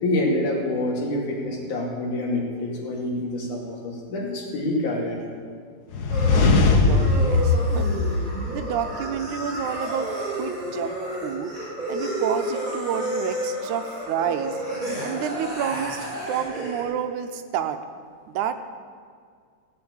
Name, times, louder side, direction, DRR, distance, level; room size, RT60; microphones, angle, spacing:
voice 1, 0.0-5.3, left 1 dB, 85° left, -1 dB, 3.9 m, -27 dB
sound 1, 5.9-8.9, left 3 dB, 70° left, 0.9 m, -20 dB
sound 2, 6.1-16.8, right 1 dB, 15° right, 5.1 m, -31 dB
voice 2, 6.6-7.9 8.5-10.1 10.4-11.5 11.9-14.6 15.0-17.8 18.3-18.5, right 8 dB, 85° right, 8 dB, 2.3 m, -29 dB
16.0 x 8.6 x 8.9 m, 2.1 s
omnidirectional pair, 3.4 m